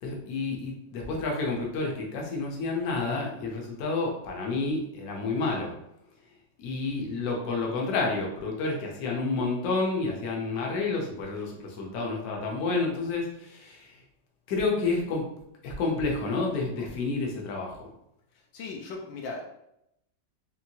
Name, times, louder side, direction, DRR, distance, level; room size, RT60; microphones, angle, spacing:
voice 1, 0.0-5.7 6.6-14.0 14.5-15.3 15.6-17.9, left 3 dB, 60° left, -1 dB, 1.2 m, -30 dB
voice 2, 18.5-19.5, left 3 dB, 80° left, 1 dB, 1.3 m, -38 dB
4.5 x 3.2 x 2.8 m, 0.80 s
omnidirectional pair, 2.0 m